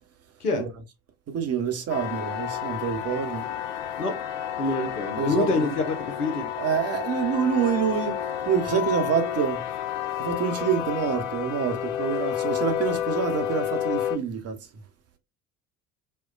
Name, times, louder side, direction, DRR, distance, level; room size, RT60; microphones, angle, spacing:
voice 1, 1.3-3.5 5.2-5.7 6.6-8.2 8.5-9.7 10.2-14.6, right 7 dB, 35° right, 0.8 m, -27 dB
sound 1, 1.9-14.2, left 10 dB, 55° left, 0.6 m, -30 dB
voice 2, 4.6-6.5, left 2 dB, 90° left, 0.8 m, -26 dB
4.4 x 2.2 x 2.2 m
figure-of-eight pair, 60°, 45 cm